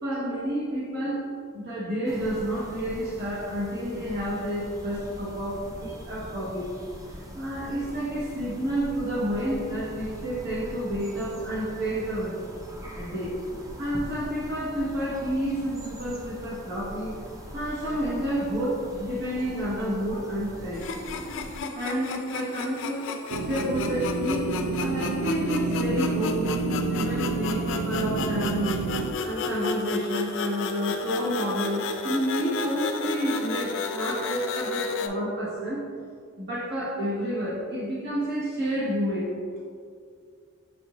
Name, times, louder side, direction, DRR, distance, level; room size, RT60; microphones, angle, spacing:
voice 1, 0.0-6.7 7.3-12.4 12.9-13.4 13.8-17.2 17.5-20.8 21.7-23.1 23.5-24.5 24.8-28.8 29.2-35.8 36.4-39.3, equal, 55° right, -6 dB, 1.2 m, -30 dB
sound 1, 2.1-21.6, equal, 15° right, 0.4 m, -42 dB
sound 2, 20.7-35.1, left 5 dB, 60° left, 0.3 m, -33 dB
sound 3, 23.3-29.1, right 3 dB, 80° right, 0.4 m, -29 dB
6.7 x 2.6 x 2.9 m, 2.2 s
head